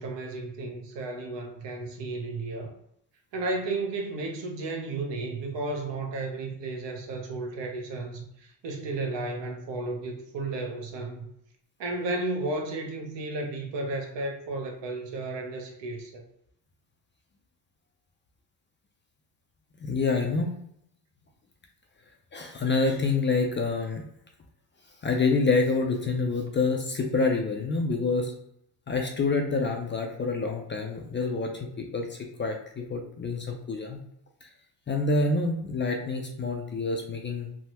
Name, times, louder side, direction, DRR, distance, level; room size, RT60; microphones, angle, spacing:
voice 1, 0.0-2.8 3.3-11.3 11.8-16.3, right 2 dB, 65° right, 0.9 m, -33 dB
voice 2, 19.8-20.5 22.3-24.0 25.0-28.3 28.9-34.0 34.9-37.5, left 3 dB, 30° left, 0.3 m, -27 dB
3.3 x 2.1 x 2.8 m
cardioid pair, 95°, 46 cm